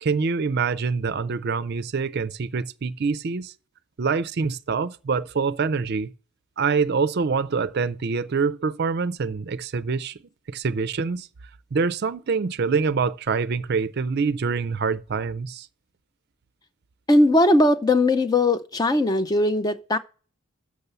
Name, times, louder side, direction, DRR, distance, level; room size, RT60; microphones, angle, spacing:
voice 1, 0.0-3.5 4.0-6.1 6.6-10.2 10.5-11.3 11.7-15.7, right 5 dB, 50° right, 0.4 m, -25 dB
voice 2, 17.1-20.0, left 1 dB, 20° left, 0.4 m, -19 dB
6.8 x 6.4 x 6.8 m
head